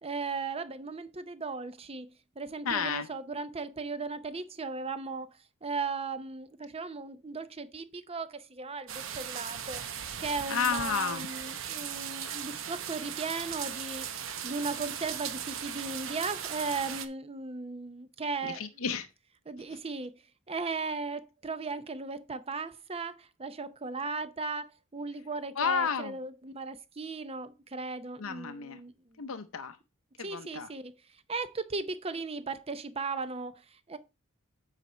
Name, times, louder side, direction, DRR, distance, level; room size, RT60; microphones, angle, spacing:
voice 1, 0.0-5.3 5.6-9.8 10.2-18.6 19.5-20.2 20.5-28.9 30.2-30.9 31.3-34.0, right 4 dB, 25° right, 0.7 m, -37 dB
voice 2, 2.6-3.1 10.5-11.3 18.4-19.1 19.7-19.8 25.6-26.2 28.2-28.8 29.2-29.8 30.2-30.7, left 6 dB, 70° left, 0.7 m, -31 dB
sound 1, 8.9-17.1, right 9 dB, 65° right, 0.8 m, -38 dB
8.3 x 4.9 x 4.3 m
head